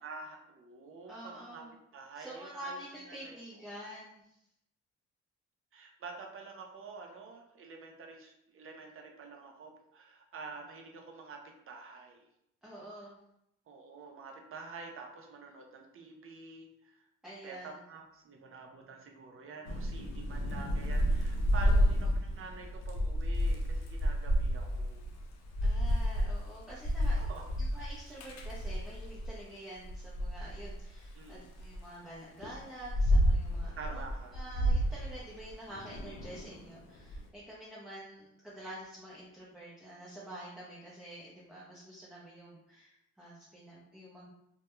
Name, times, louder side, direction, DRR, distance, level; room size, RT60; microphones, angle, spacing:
voice 1, 0.0-1.6 1.9-2.8 3.1-3.6 5.7-11.4 11.7-12.3 13.7-17.1 17.4-25.1 27.2-27.8 28.1-28.2 31.1-31.5 33.8-34.4, right 4 dB, 45° right, 1 dB, 0.6 m, -48 dB
voice 2, 1.0-1.7 2.1-4.2 12.6-13.2 17.2-17.7 21.7-21.9 25.6-27.2 27.6-34.0 34.3-44.3, right 1 dB, ahead, -8 dB, 0.6 m, -48 dB
Thunder / Rain, 19.6-29.4 29.8-31.8 32.4-37.2, equal, 65° left, 0.5 m, -31 dB
2.2 x 2.2 x 2.9 m, 0.78 s
cardioid pair, 90°, 30 cm